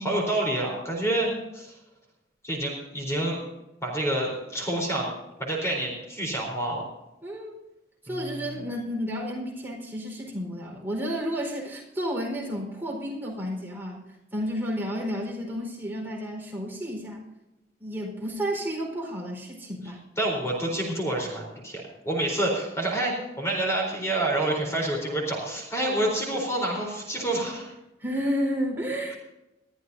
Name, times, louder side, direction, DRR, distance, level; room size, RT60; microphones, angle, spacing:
voice 1, 0.0-1.3 1.5-1.7 2.4-3.4 3.8-5.1 5.4-6.8 8.1-8.6 20.2-27.7, right 1 dB, 15° left, -1 dB, 4.0 m, -28 dB
voice 2, 7.2-7.6 8.0-14.0 14.3-17.2 17.8-20.0 28.0-29.1, equal, 10° right, -2 dB, 4.5 m, -31 dB
21.0 x 14.5 x 2.7 m, 0.95 s
head